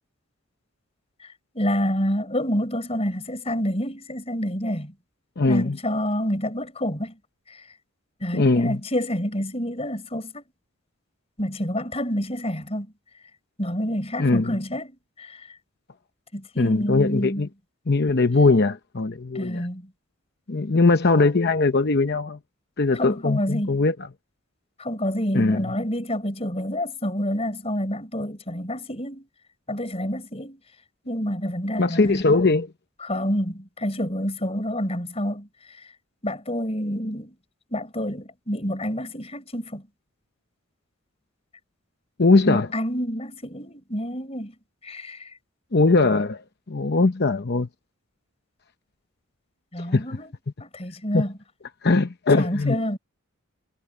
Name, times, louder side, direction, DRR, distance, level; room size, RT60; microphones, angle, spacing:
voice 1, 1.5-4.9 5.5-7.2 7.5-7.6 8.2-10.4 11.4-12.9 13.6-15.4 16.3-17.4 19.3-19.9 22.9-23.8 24.8-29.3 29.7-30.6 31.1-32.4 33.0-35.5 36.2-37.3 37.7-39.8 42.5-44.5 44.8-45.3 49.7-50.3 50.6-51.3 52.4-53.0, equal, 30° left, 4.6 m, -28 dB
voice 2, 5.4-5.8 8.3-8.8 14.2-14.6 16.6-17.5 17.9-19.6 20.5-22.4 22.8-23.9 25.3-25.6 31.8-32.7 42.2-42.7 45.7-46.4 46.7-47.7 49.8-50.1 51.1-51.2 51.8-52.8, left 3 dB, 50° left, 0.8 m, -20 dB
head